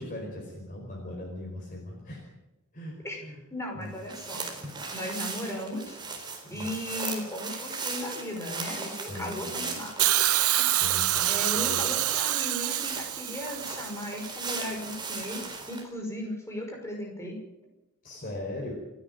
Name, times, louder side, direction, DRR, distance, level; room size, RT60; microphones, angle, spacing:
voice 1, 0.0-2.2 2.7-3.4 3.7-3.9 6.4-6.7 9.0-9.7 10.7-12.0 18.0-18.7, left 1 dB, 40° left, -2 dB, 4.8 m, -39 dB
voice 2, 3.5-4.5 4.9-6.0 6.5-10.7 11.3-17.4, left 1 dB, 15° left, 1 dB, 5.5 m, -36 dB
sound 1, 3.9-15.8, right 4 dB, 20° right, 3.9 m, -38 dB
Hiss, 10.0-14.1 15.2-15.3, right 14 dB, 80° right, 0.9 m, -26 dB
27.5 x 10.0 x 9.1 m, 0.96 s
head